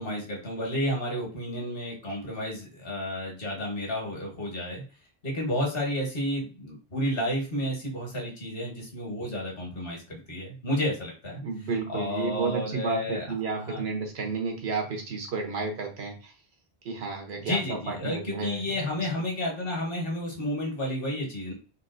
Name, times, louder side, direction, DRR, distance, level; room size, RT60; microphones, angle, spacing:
voice 1, 0.0-4.8 5.2-13.3 13.6-13.9 17.3-21.5, left 1 dB, 60° left, -1 dB, 1.4 m, -31 dB
voice 2, 11.4-16.1 16.8-17.6 17.9-18.6, right 4 dB, 85° right, 2 dB, 1.1 m, -31 dB
3.7 x 2.4 x 2.5 m, 0.36 s
omnidirectional pair, 1.0 m